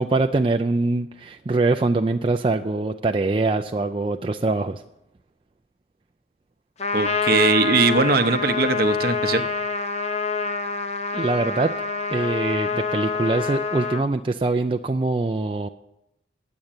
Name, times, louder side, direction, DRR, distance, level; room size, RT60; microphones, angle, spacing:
voice 1, 0.0-4.8 11.1-11.7 12.1-15.7, right 3 dB, 30° right, 5 dB, 0.4 m, -23 dB
Trumpet, 6.8-14.0, left 4 dB, 35° left, 0.7 m, -26 dB
voice 2, 6.9-9.4, right 3 dB, 55° right, 11 dB, 0.8 m, -20 dB
9.9 x 7.9 x 8.8 m, 0.86 s
head